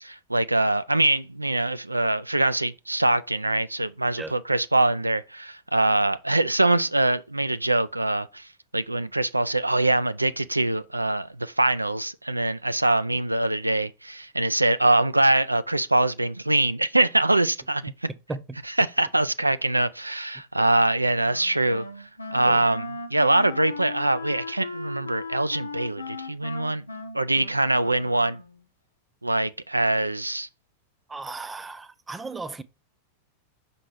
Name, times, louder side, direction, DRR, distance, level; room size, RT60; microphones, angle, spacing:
voice 1, 0.0-8.5 8.7-18.1 18.8-21.8 22.3-26.8 27.1-28.4 29.2-30.5, right 2 dB, 85° right, 0.3 m, -23 dB
voice 2, 18.1-18.6 22.5-22.6 31.1-32.6, right 3 dB, 10° right, 0.6 m, -36 dB
Wind instrument woodwind instrument, 21.2-28.7, left 3 dB, 80° left, 0.9 m, -37 dB
6.1 x 4.2 x 4.7 m
figure-of-eight pair, 90°, 0 cm